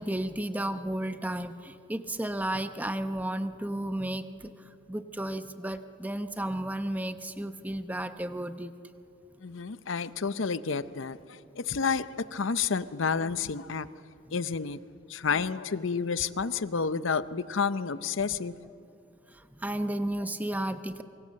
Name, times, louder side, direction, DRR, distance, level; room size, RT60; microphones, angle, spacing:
voice 1, 0.0-4.5 4.9-8.7 19.3-21.0, right 1 dB, 10° right, 0.8 m, -33 dB
voice 2, 9.4-13.9 14.3-14.8 15.1-18.5, left 5 dB, 70° left, 0.7 m, -30 dB
27.0 x 24.0 x 7.6 m
head